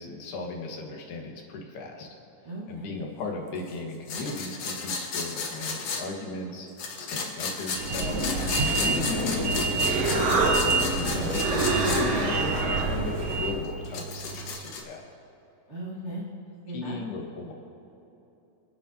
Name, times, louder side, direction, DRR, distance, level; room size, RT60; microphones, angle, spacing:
voice 1, 0.0-2.1 2.7-6.7 7.0-8.3 8.8-10.3 10.9-15.1 16.7-17.5, left 3 dB, 80° left, 0 dB, 3.7 m, -36 dB
voice 2, 2.4-2.9 11.0-11.3 15.7-17.0, right 1 dB, 40° right, -7 dB, 1.0 m, -38 dB
sound 1, 4.1-6.1 6.8-12.0 12.4-12.5 13.6-14.8, left 4 dB, 65° left, 1.7 m, -33 dB
sound 2, 7.7-13.7, right 3 dB, 65° right, 1.6 m, -28 dB
Human voice, 9.4-14.5, right 3 dB, 90° right, 4.0 m, -29 dB
28.5 x 9.7 x 2.9 m, 3.0 s
omnidirectional pair, 4.6 m